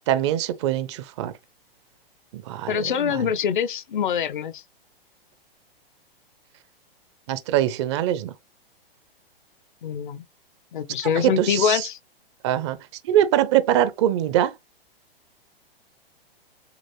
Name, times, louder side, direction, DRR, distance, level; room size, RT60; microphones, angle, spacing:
voice 1, 0.1-1.3 2.3-3.3 7.3-8.3 11.2-11.9 12.4-12.8 13.1-14.5, right 12 dB, 30° right, 0.5 m, -23 dB
voice 2, 2.7-4.6 9.8-10.2 10.7-12.0, left 8 dB, 55° left, 0.7 m, -24 dB
6.8 x 2.5 x 2.8 m
figure-of-eight pair, 110°, 29 cm